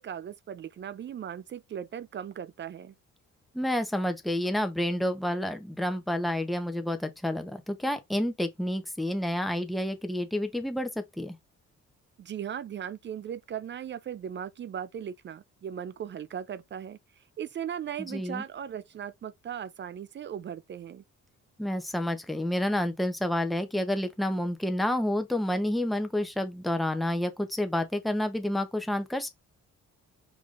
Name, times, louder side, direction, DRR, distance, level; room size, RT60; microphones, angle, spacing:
voice 1, 0.0-2.9 12.2-17.0 17.4-21.0, right 9 dB, 40° right, 0.4 m, -38 dB
voice 2, 3.5-11.4 18.0-18.4 21.6-29.3, left 1 dB, ahead, 0.7 m, -29 dB
4.9 x 3.5 x 2.5 m
cardioid pair, 90°, 30 cm